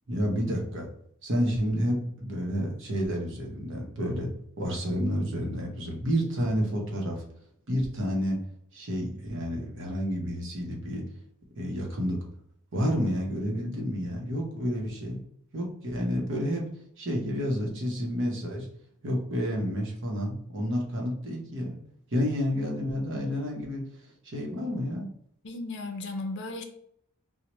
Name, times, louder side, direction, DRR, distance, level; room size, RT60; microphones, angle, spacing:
voice 1, 0.1-0.9 1.2-4.3 4.6-7.2 7.7-8.4 8.7-11.0 11.5-12.2 12.7-15.2 15.5-16.7 17.0-18.7 19.0-21.7 22.1-23.9 24.2-25.1, equal, 55° right, 0 dB, 0.9 m, -30 dB
voice 2, 25.4-26.6, left 2 dB, 50° left, 5 dB, 0.5 m, -35 dB
4.6 x 2.1 x 3.0 m, 0.70 s
head